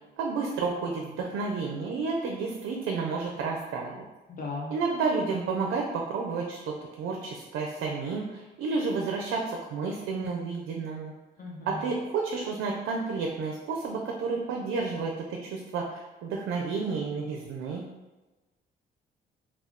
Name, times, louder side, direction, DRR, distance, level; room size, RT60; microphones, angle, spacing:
voice 1, 0.2-4.0 4.7-11.1 11.7-15.1 15.4-17.8, right 4 dB, 85° right, 0 dB, 0.4 m, -31 dB
voice 2, 4.3-4.8 11.4-11.9, left 3 dB, 45° left, -2 dB, 0.5 m, -37 dB
2.3 x 2.3 x 3.4 m, 1.2 s
cardioid pair, 90°, 20 cm